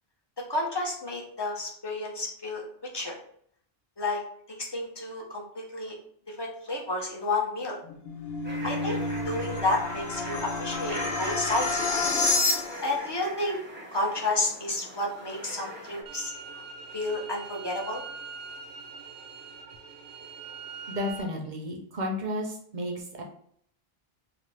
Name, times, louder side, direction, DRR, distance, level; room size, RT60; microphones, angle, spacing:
voice 1, 0.5-2.6 2.9-3.2 4.0-4.2 4.5-5.9 6.3-7.8 8.6-9.0 9.2-12.0 12.8-13.6 13.9-16.6 16.9-18.0, left 2 dB, 35° left, -1 dB, 0.4 m, -31 dB
sound 1, 7.9-13.0, left 3 dB, 80° left, 0.9 m, -29 dB
sound 2, 8.4-16.0, equal, 15° right, 0.6 m, -42 dB
sound 3, 16.1-21.2, right 5 dB, 90° right, 0.8 m, -43 dB
voice 2, 20.9-23.2, left 1 dB, 55° right, 2 dB, 0.6 m, -32 dB
2.5 x 2.5 x 3.1 m, 0.64 s
omnidirectional pair, 1.0 m